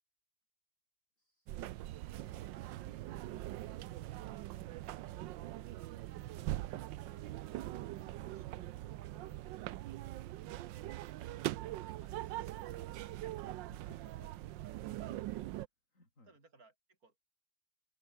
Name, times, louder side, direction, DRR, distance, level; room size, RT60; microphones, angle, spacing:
voice 1, 1.2-4.8 8.2-8.6 13.7-14.3 14.9-15.2 15.9-16.4, left 2 dB, 40° left, 7.7 m, -65 dB
sound 1, 1.5-15.7, right 15 dB, 70° right, 1.3 m, -42 dB
voice 2, 6.4-7.5 8.3-9.4 11.0-14.3 16.3-17.2, right 3 dB, 45° right, 5.1 m, -64 dB
open air
omnidirectional pair, 2.2 m